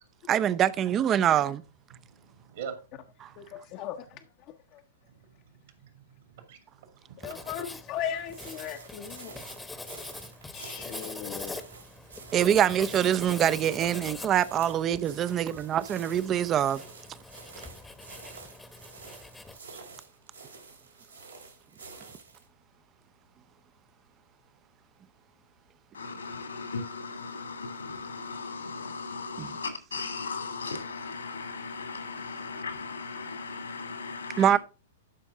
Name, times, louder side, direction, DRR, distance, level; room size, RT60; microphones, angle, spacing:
voice 1, 0.3-1.6 3.2-3.3 12.3-16.8 29.4-29.5 34.4-34.6, right 10 dB, 30° right, 0.5 m, -24 dB
voice 2, 1.9-2.8 5.1-5.2 5.5-6.6 7.2-7.3, right 7 dB, 60° right, 2.3 m, -43 dB
voice 3, 3.4-4.0 7.2-9.4 10.5-11.6, left 9 dB, 40° left, 0.7 m, -37 dB
Writing, 7.2-19.6, left 2 dB, 5° left, 1.0 m, -43 dB
sound 1, 8.3-22.5, right 4 dB, 80° right, 3.0 m, -49 dB
voice 4, 25.9-34.6, left 4 dB, 80° left, 2.6 m, -37 dB
12.0 x 5.3 x 3.7 m
figure-of-eight pair, 105°, 0 cm